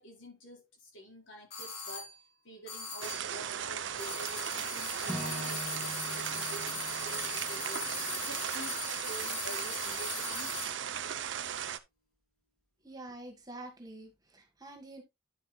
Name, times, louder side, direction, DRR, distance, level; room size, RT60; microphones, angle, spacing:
voice 1, 0.0-2.1 2.4-10.5, right 1 dB, 70° left, 4.7 m, -49 dB
sound 1, 1.5-2.2 2.7-3.4 4.0-10.8, left 4 dB, 50° left, 4.4 m, -40 dB
sound 2, 3.0-11.8, right 9 dB, 65° right, 0.6 m, -37 dB
Acoustic guitar / Strum, 5.0-9.4, equal, 5° left, 3.1 m, -44 dB
voice 2, 12.8-15.0, right 2 dB, 20° right, 1.7 m, -47 dB
11.0 x 7.4 x 2.3 m
head